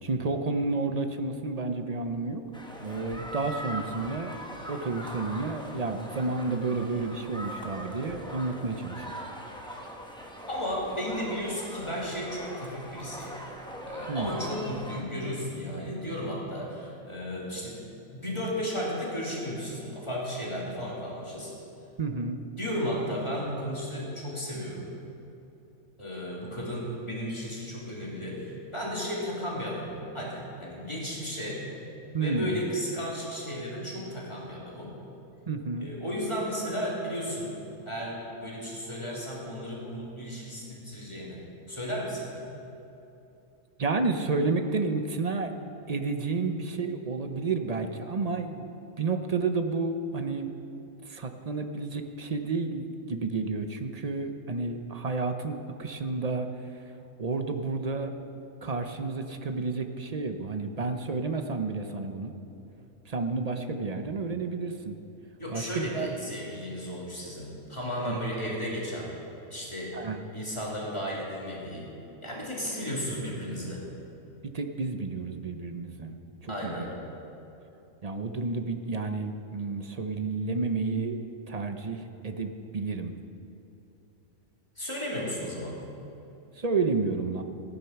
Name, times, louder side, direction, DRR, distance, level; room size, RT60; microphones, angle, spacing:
voice 1, 0.0-2.4 2.8-4.4 4.7-9.2 14.1-14.3 22.0-22.4 32.1-32.6 35.5-35.9 43.8-45.5 45.9-48.7 49.0-50.5 51.0-56.5 57.2-58.1 58.6-62.3 63.1-64.9 65.5-66.3 68.0-68.2 69.9-70.2 74.4-76.1 76.4-76.9 78.0-81.2 81.5-83.1 86.6-87.4, right 3 dB, 40° right, 6 dB, 0.6 m, -31 dB
sound 1, 2.5-15.0, equal, 5° left, 1.0 m, -41 dB
voice 2, 10.5-13.4 13.8-17.8 18.1-21.6 22.6-24.9 26.0-31.6 32.2-34.9 35.8-37.5 37.9-41.4 41.7-42.4 65.4-69.1 69.5-70.0 70.3-71.9 72.2-73.8 76.5-76.9 84.8-85.8, equal, 20° left, -5 dB, 2.7 m, -34 dB
15.5 x 9.7 x 5.9 m, 3.0 s
omnidirectional pair, 1.4 m